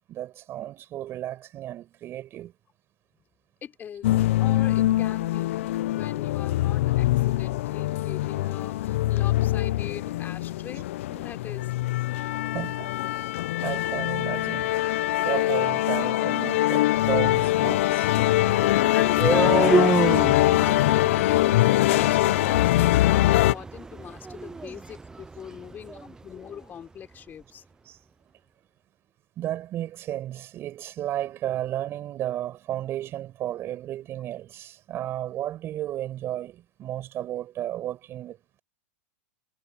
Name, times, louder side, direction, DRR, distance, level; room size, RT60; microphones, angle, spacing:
voice 1, 0.1-2.5 12.4-13.3 13.6-14.7 15.2-18.1 27.8-28.0 29.4-38.4, right 12 dB, 35° right, 6.4 m, -33 dB
voice 2, 3.6-4.1 4.4-5.6 5.9-11.7 18.6-27.6 36.8-37.0, left 9 dB, 25° left, 4.9 m, -41 dB
sound 1, 4.0-23.5, left 15 dB, 70° left, 0.5 m, -23 dB
sound 2, 18.2-26.1, right 3 dB, 10° right, 0.5 m, -29 dB
supercardioid pair, 130°, 7 cm